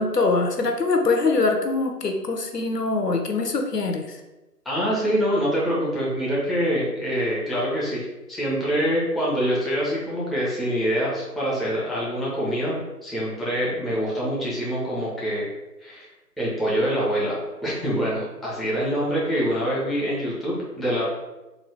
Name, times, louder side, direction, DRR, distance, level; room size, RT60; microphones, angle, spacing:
voice 1, 0.0-4.2, left 3 dB, 70° left, 4 dB, 0.6 m, -23 dB
voice 2, 4.7-15.5 15.8-16.1 16.4-21.0, equal, ahead, -7 dB, 0.5 m, -25 dB
3.7 x 2.1 x 3.2 m, 1.0 s
figure-of-eight pair, 175°, 50 cm